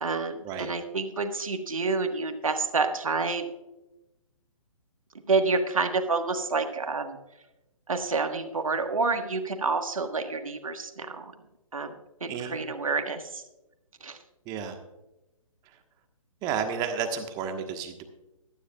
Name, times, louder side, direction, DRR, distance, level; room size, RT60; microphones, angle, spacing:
voice 1, 0.0-3.5 5.3-7.2 7.9-11.3 11.7-11.9 12.2-13.4 14.0-14.2, right 4 dB, 70° right, 7 dB, 1.5 m, -28 dB
voice 2, 12.3-12.6 14.4-14.8 15.6-15.8 16.4-18.0, right 7 dB, 20° right, 6 dB, 1.4 m, -32 dB
14.5 x 13.0 x 2.4 m, 0.98 s
figure-of-eight pair, 135°, 18 cm